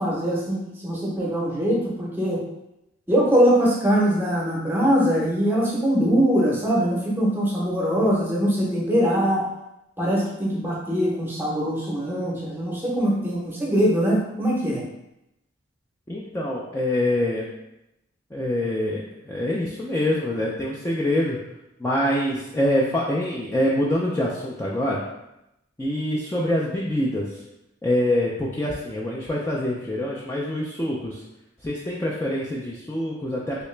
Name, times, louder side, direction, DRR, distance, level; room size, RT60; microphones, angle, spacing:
voice 1, 0.0-2.4 3.1-9.5 10.0-14.8, equal, 10° right, -4 dB, 0.7 m, -22 dB
voice 2, 16.1-17.5 18.3-21.4 21.8-25.0 25.8-27.3 27.8-31.2 31.6-33.6, left 1 dB, 10° left, -6 dB, 0.3 m, -25 dB
3.1 x 2.9 x 3.2 m, 0.87 s
head